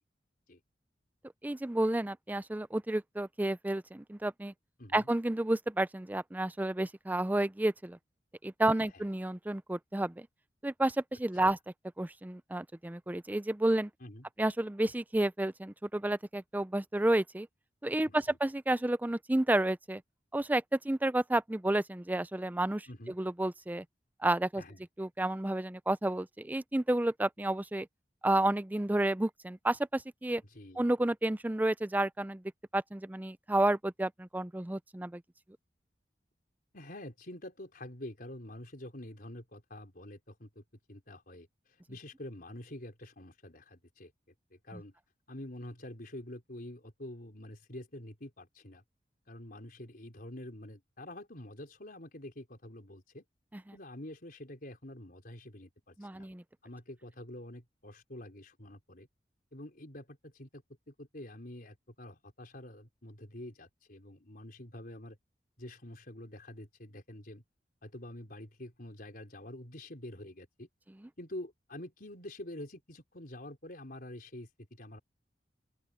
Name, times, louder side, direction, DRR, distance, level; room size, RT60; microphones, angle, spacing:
voice 1, 1.4-4.5 4.9-8.0 8.4-10.3 10.6-11.6 12.0-13.9 14.4-17.5 17.8-20.0 20.3-22.9 23.2-23.8 24.2-24.6 25.0-27.9 28.2-30.4 30.8-32.4 32.7-35.2 44.7-44.8 53.5-53.6 56.0-56.4, right 1 dB, 10° right, 0.4 m, -31 dB
voice 2, 18.0-18.4 22.9-23.2 24.6-24.8 30.5-30.8 36.7-40.6 40.9-41.5 41.9-44.1 44.5-44.9 45.3-48.8 49.3-53.2 53.7-56.3 56.6-59.1 59.5-65.2 65.6-67.4 67.8-70.7 71.2-75.0, left 1 dB, 55° left, 4.4 m, -47 dB
open air
head